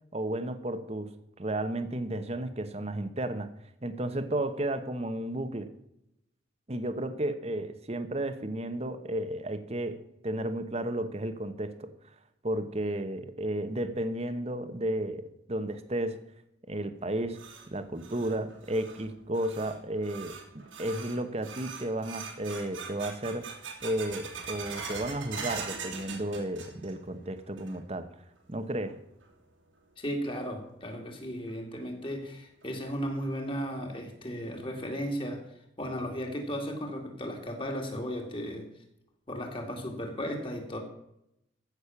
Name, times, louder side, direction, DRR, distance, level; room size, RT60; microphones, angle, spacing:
voice 1, 0.1-1.1 1.4-3.5 3.8-5.7 6.7-11.9 12.4-16.2 16.7-17.4 17.7-20.4 20.8-23.5 23.8-28.1 28.5-29.0, right 1 dB, 35° right, 10 dB, 1.0 m, -33 dB
sound 1, 17.0-27.1 27.4-28.0 28.4-28.5 29.2-29.3 30.9-31.0 31.5-31.6 32.0-32.1 32.6-32.7 33.2-33.6, right 5 dB, 90° right, 3.1 m, -42 dB
voice 2, 30.0-38.7 39.3-40.8, equal, 25° left, 3 dB, 2.4 m, -35 dB
15.0 x 6.4 x 7.2 m, 0.81 s
head